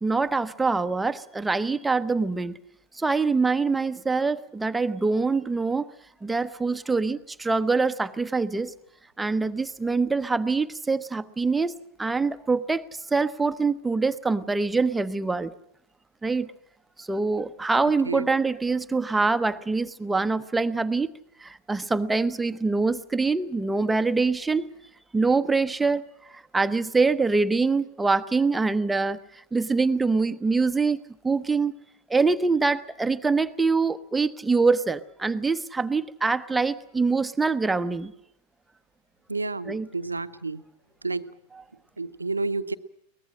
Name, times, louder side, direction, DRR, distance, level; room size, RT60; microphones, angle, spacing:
voice 1, 0.0-2.6 2.9-5.9 6.2-8.7 9.2-15.5 16.2-16.5 17.0-21.1 21.4-24.7 25.1-26.0 26.3-29.2 29.5-31.7 32.1-38.1 39.7-39.9, right 4 dB, 10° right, 0.8 m, -24 dB
voice 2, 39.3-40.6 41.0-41.3 42.0-42.7, right 3 dB, 80° right, 0.8 m, -30 dB
23.0 x 19.5 x 7.6 m
figure-of-eight pair, 90°, 0 cm